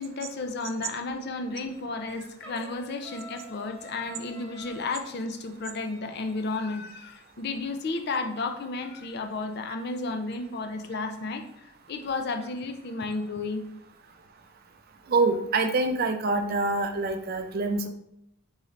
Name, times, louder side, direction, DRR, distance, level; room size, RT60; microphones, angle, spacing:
voice 1, 0.0-11.4 11.9-13.7, left 3 dB, 50° left, 6 dB, 0.4 m, -33 dB
Trumpet, 2.4-5.0, right 1 dB, 5° left, 0.7 m, -47 dB
voice 2, 15.1-17.9, right 3 dB, 45° right, 6 dB, 0.4 m, -25 dB
4.0 x 3.1 x 3.9 m, 0.76 s
head